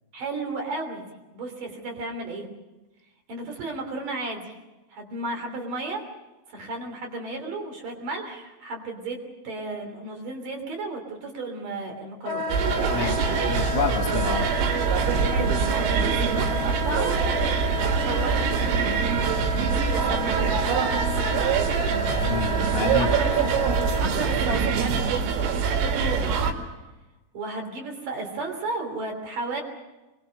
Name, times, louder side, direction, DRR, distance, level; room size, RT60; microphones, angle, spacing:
voice 1, 0.1-1.1 1.3-2.5 3.3-4.5 4.9-6.0 6.5-9.2 9.4-12.5 12.9-13.2 15.2-17.2 17.8-18.7 19.5-20.7 22.9-23.4 23.8-26.4 27.3-29.6, right 2 dB, 45° right, 2 dB, 4.2 m, -33 dB
Wind instrument woodwind instrument, 12.3-24.0, left 1 dB, 65° left, 2.3 m, -32 dB
sound 1, 12.5-26.5, right 6 dB, 85° right, 4.6 m, -24 dB
voice 2, 13.5-14.5 22.2-23.1, left 6 dB, 80° left, 5 dB, 4.3 m, -28 dB
24.0 x 22.5 x 6.5 m, 1.1 s
omnidirectional pair, 5.7 m